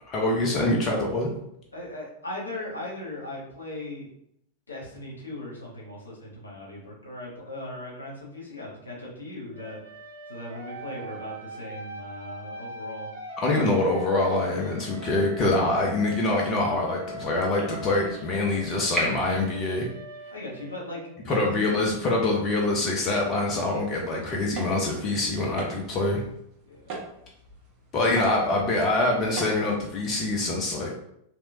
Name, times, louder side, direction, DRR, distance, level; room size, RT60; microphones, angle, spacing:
voice 1, 0.1-1.3 13.4-19.9 21.3-26.2 27.9-30.9, left 2 dB, 30° left, -1 dB, 0.7 m, -25 dB
voice 2, 1.7-4.1 4.7-9.8 10.3-13.1 20.3-21.6 26.7-27.0, left 1 dB, 75° left, -4 dB, 1.2 m, -38 dB
sound 1, 9.5-21.3, right 1 dB, 75° right, 0.7 m, -42 dB
sound 2, 14.1-19.4, right 1 dB, ahead, 1.0 m, -39 dB
sound 3, 23.9-30.4, right 3 dB, 40° right, 1.2 m, -43 dB
3.4 x 3.0 x 2.8 m, 0.75 s
figure-of-eight pair, 90°, 0 cm